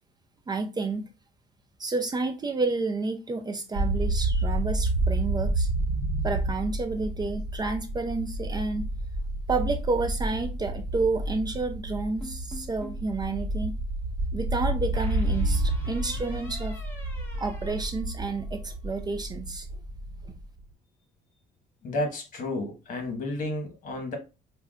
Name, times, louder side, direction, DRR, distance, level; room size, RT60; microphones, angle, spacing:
voice 1, 0.5-1.0 1.8-5.7 6.2-8.9 9.5-13.7 14.3-16.7 17.4-19.7, right 3 dB, 25° right, 0.5 m, -30 dB
sound 1, 3.7-20.6, right 2 dB, 85° right, 1.1 m, -30 dB
sound 2, 12.2-13.1 14.9-18.7, equal, 10° left, 1.5 m, -46 dB
voice 2, 21.8-24.2, left 1 dB, 50° left, 1.2 m, -31 dB
5.6 x 2.2 x 2.4 m
cardioid pair, 110°, 17 cm